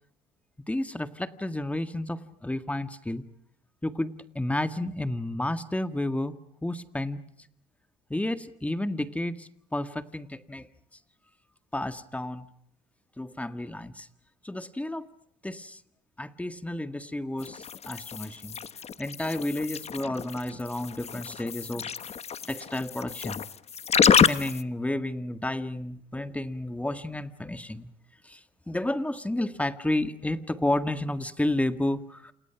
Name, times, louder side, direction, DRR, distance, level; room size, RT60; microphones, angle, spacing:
voice 1, 0.7-3.2 3.8-6.4 6.6-7.2 8.1-10.7 11.7-12.5 13.2-14.1 14.4-15.1 15.4-15.8 16.2-18.6 19.0-21.9 22.5-23.4 24.1-27.9 28.2-28.4 28.7-32.3, left 1 dB, 10° left, 10 dB, 1.8 m, -31 dB
sound 1, 17.4-24.6, left 7 dB, 40° left, 1.2 m, -28 dB
29.0 x 28.5 x 5.9 m, 0.68 s
cardioid pair, 110°, 17 cm